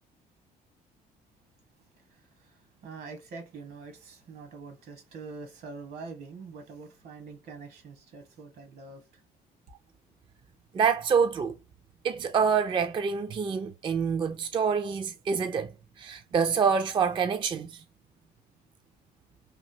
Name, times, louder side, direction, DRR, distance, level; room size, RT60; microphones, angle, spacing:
voice 1, 1.9-9.2 9.7-9.8, right 4 dB, 70° right, 1.2 m, -45 dB
voice 2, 10.7-11.5 12.0-15.7 16.0-17.8, right 6 dB, 30° right, 0.3 m, -26 dB
3.2 x 2.7 x 2.7 m
cardioid pair, 110°, 17 cm